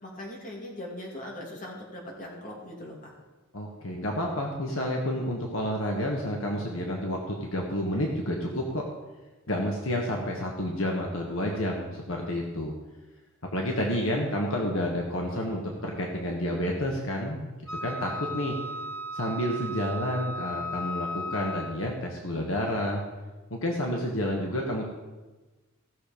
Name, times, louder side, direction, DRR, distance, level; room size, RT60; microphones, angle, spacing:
voice 1, 0.0-3.1, left 1 dB, 40° left, -2 dB, 2.6 m, -40 dB
voice 2, 3.5-8.8 9.5-12.7 13.5-17.5 17.8-18.5 19.1-23.0 23.5-24.8, left 1 dB, 65° left, 0 dB, 1.5 m, -30 dB
Wind instrument woodwind instrument, 17.7-21.9, left 1 dB, 15° left, 3.7 m, -36 dB
16.0 x 6.8 x 5.2 m, 1.2 s
head